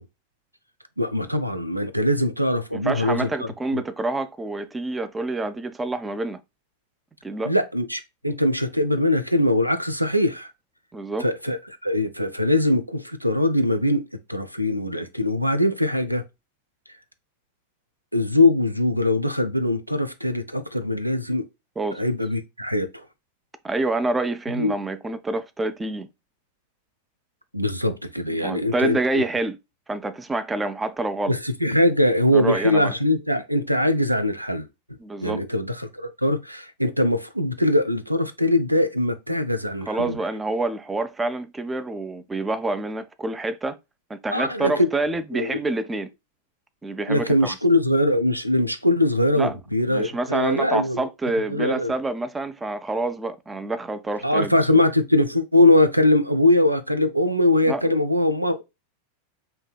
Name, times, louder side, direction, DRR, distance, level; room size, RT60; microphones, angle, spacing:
voice 1, 1.0-3.3 3.7-3.8 7.4-10.5 11.2-16.2 18.1-21.5 21.9-23.1 24.6-24.8 27.5-29.2 31.3-40.2 44.3-44.9 45.3-45.6 47.1-51.1 51.5-51.9 54.2-58.6, left 1 dB, 90° right, 0.4 m, -22 dB
voice 2, 2.7-6.4 7.2-7.5 10.9-11.3 21.8-22.0 23.6-26.1 28.4-29.6 29.9-31.3 32.3-32.9 35.0-35.4 39.9-43.8 44.1-46.1 46.8-47.6 49.4-49.6 49.9-54.8 57.7-57.8, right 2 dB, 10° right, 0.3 m, -27 dB
5.5 x 2.7 x 2.2 m
figure-of-eight pair, 90°, 0 cm